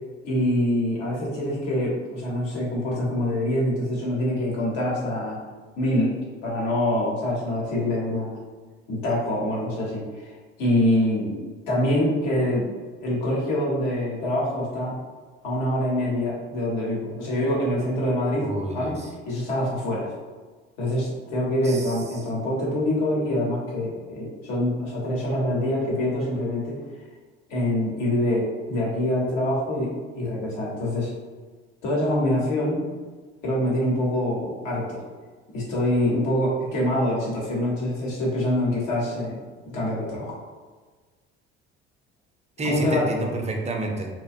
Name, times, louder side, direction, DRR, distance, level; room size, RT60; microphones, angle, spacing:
voice 1, 0.2-5.4 5.8-8.4 8.9-10.3 10.6-11.4 11.7-12.7 13.0-15.0 15.4-19.0 19.3-20.1 20.8-26.8 27.5-31.1 31.8-32.8 33.4-35.0 35.5-39.4 39.7-40.3 42.6-43.1, left 1 dB, 75° left, -5 dB, 1.0 m, -25 dB
voice 2, 18.4-19.1 21.6-22.2 42.6-44.1, right 2 dB, 20° right, 1 dB, 0.5 m, -30 dB
2.5 x 2.2 x 2.5 m, 1.4 s
hypercardioid pair, 60°, 31 cm